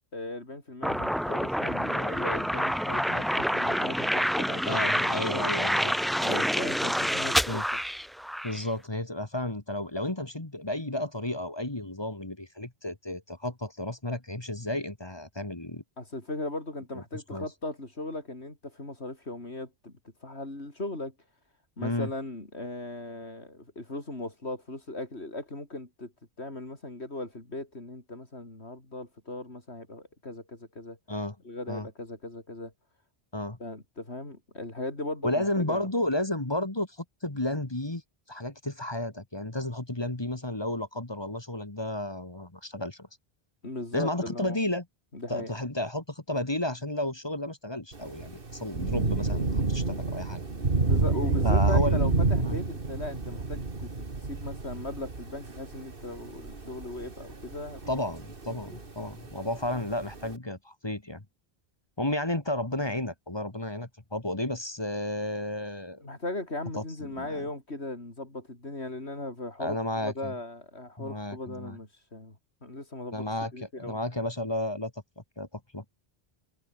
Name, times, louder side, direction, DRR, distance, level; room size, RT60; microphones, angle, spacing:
voice 1, 0.1-5.6 6.2-7.8 16.0-19.9 20.2-21.1 21.8-26.1 26.4-31.0 31.4-32.7 33.6-35.9 43.6-44.6 45.1-45.5 50.9-57.8 66.0-72.4 72.6-73.3 73.5-73.9, left 2 dB, 85° left, 5.5 m, -38 dB
sound 1, 0.8-8.6, equal, ahead, 0.6 m, -27 dB
voice 2, 4.6-5.9 6.3-6.4 7.5-7.6 8.4-15.8 16.9-17.5 21.8-22.1 31.1-31.4 31.7-31.9 33.3-33.6 35.2-38.0 38.3-43.1 43.9-44.9 45.3-50.4 51.4-52.0 52.4-52.6 57.9-61.2 62.0-66.0 66.8-67.5 69.6-70.3 71.0-71.8 73.1-74.9 75.4-75.5 75.7-75.8, left 1 dB, 25° left, 1.9 m, -32 dB
Thunder / Rain, 47.9-60.3, right 3 dB, 55° right, 2.5 m, -29 dB
omnidirectional pair, 1.1 m